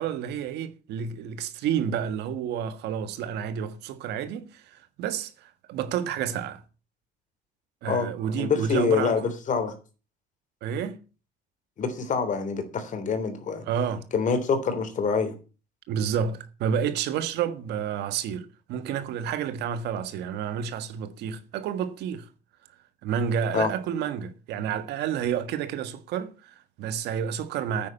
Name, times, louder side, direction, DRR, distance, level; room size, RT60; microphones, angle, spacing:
voice 1, 0.0-6.6 7.8-9.3 10.6-11.0 13.7-14.1 15.9-22.3 23.0-27.9, right 8 dB, 80° right, 1.6 m, -30 dB
voice 2, 8.4-9.7 11.8-13.6 14.1-15.3 23.5-23.7, left 5 dB, 50° left, 3.3 m, -26 dB
9.6 x 9.1 x 6.8 m
cardioid pair, 110°, 17 cm